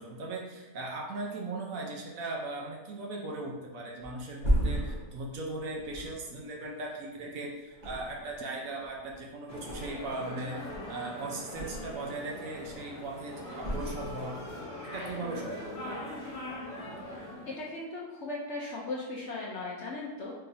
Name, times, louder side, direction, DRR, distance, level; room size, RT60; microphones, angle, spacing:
voice 1, 0.0-14.4 14.8-15.7, right 2 dB, 65° right, -1 dB, 1.0 m, -38 dB
Thump thud, 4.0-7.3 7.7-8.5 8.8-10.3 10.6-12.1 12.5-13.0 13.6-14.6 14.9-15.1, equal, 30° right, 1.2 m, -34 dB
sound 1, 9.5-17.6, left 1 dB, 45° left, 1.3 m, -41 dB
voice 2, 17.5-20.3, left 2 dB, 60° left, -4 dB, 0.7 m, -37 dB
4.3 x 3.8 x 2.6 m, 1.3 s
omnidirectional pair, 1.7 m